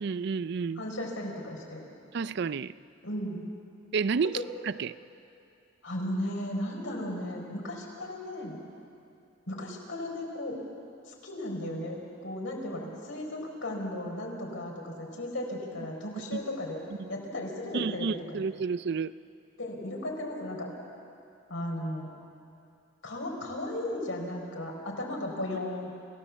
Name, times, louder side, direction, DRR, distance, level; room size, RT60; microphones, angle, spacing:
voice 1, 0.0-0.8 2.1-2.7 3.9-4.4 4.6-4.9 16.3-16.5 17.0-17.1 17.7-19.1, right 5 dB, 60° right, 16 dB, 0.4 m, -30 dB
voice 2, 0.8-1.8 3.0-3.4 4.3-4.4 5.8-8.6 9.5-10.6 11.1-16.8 17.1-18.4 19.6-20.7 21.5-22.1 23.0-25.9, left 1 dB, 85° left, 0 dB, 4.5 m, -35 dB
28.0 x 16.0 x 7.2 m, 2.5 s
head